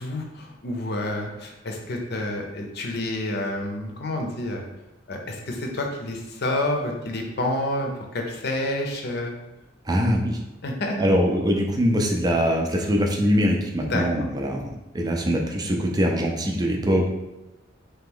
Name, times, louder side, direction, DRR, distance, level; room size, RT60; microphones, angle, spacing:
voice 1, 0.0-4.7 5.1-9.3 10.6-11.1 13.8-14.0, left 1 dB, 55° left, 2 dB, 0.7 m, -29 dB
voice 2, 9.9-10.4 11.0-17.1, equal, 20° right, 1 dB, 0.5 m, -23 dB
3.3 x 2.9 x 3.7 m, 1.0 s
head